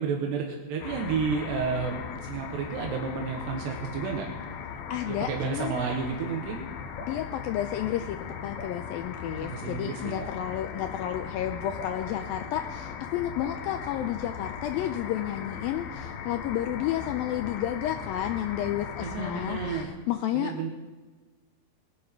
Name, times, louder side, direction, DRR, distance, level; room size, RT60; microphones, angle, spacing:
voice 1, 0.0-4.3 5.0-6.7 9.2-10.3 19.0-19.9 20.3-20.7, right 5 dB, 80° right, 1 dB, 3.5 m, -31 dB
sound 1, 0.8-19.9, left 7 dB, 70° left, 2.8 m, -38 dB
voice 2, 4.9-5.7 7.1-19.6 20.1-20.5, left 11 dB, 90° left, 8 dB, 2.1 m, -31 dB
Drip, 6.9-7.2 8.6-8.8 10.2-10.4 11.8-12.0 13.4-13.6, left 3 dB, 30° left, 4.4 m, -42 dB
21.0 x 10.5 x 4.6 m, 1.3 s
omnidirectional pair, 4.8 m